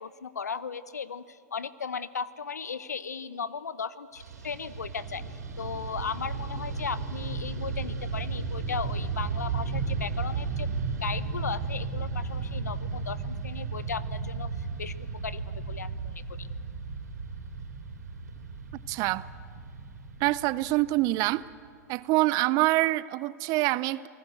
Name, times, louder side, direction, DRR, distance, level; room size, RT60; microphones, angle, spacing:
voice 1, 0.0-5.2 5.6-10.7 11.0-15.0 15.2-16.5, left 6 dB, 85° left, 17 dB, 0.9 m, -36 dB
Fixed-wing aircraft airplane, 4.2-21.6, right 4 dB, 85° right, 4.4 m, -34 dB
voice 2, 18.9-19.2 20.2-21.4 21.9-24.1, right 19 dB, 45° right, 19 dB, 0.7 m, -25 dB
28.0 x 18.5 x 7.8 m, 2.2 s
hypercardioid pair, 105°, 9 cm